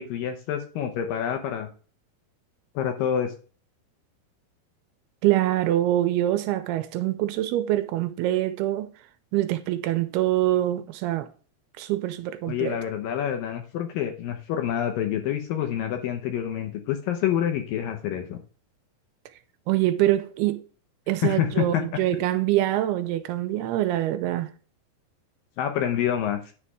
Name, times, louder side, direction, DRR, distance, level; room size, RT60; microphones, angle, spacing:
voice 1, 0.0-1.7 2.8-3.3 12.5-18.4 21.2-21.8 25.6-26.5, left 10 dB, 70° left, 2.4 m, -27 dB
voice 2, 5.2-8.9 9.3-11.3 11.8-12.8 19.7-20.6 21.1-24.5, right 14 dB, 85° right, 2.6 m, -24 dB
9.9 x 3.4 x 6.2 m
omnidirectional pair, 4.7 m